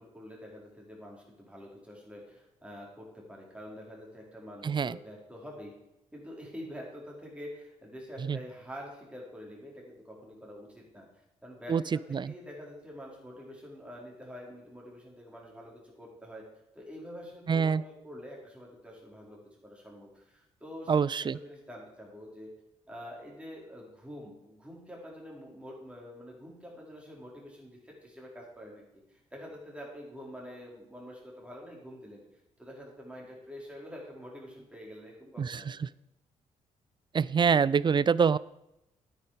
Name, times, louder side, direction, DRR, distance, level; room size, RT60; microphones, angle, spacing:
voice 1, 0.0-5.7 6.1-16.4 16.7-21.0 21.3-22.5 22.9-28.8 29.1-32.2 32.6-35.8, equal, 5° right, -3 dB, 4.8 m, -46 dB
voice 2, 4.6-5.0 8.3-8.4 11.7-11.8 12.1-12.3 17.5-17.8 20.9-21.4 35.4-35.6 37.1-38.4, right 6 dB, 30° right, 20 dB, 0.4 m, -25 dB
9.6 x 9.3 x 5.1 m, 0.86 s
figure-of-eight pair, 40°, 17 cm